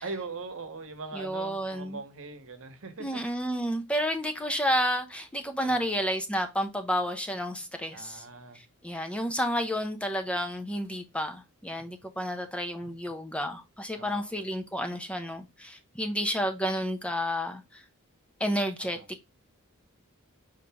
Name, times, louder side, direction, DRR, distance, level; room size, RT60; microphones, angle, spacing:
voice 1, 0.0-3.2 5.6-5.9 7.9-8.6 13.9-14.3 18.8-19.1, right 3 dB, 65° right, 0.9 m, -41 dB
voice 2, 1.1-2.0 3.0-8.2 8.5-17.8 18.4-19.0, equal, 5° left, 0.5 m, -31 dB
5.1 x 2.9 x 3.4 m
head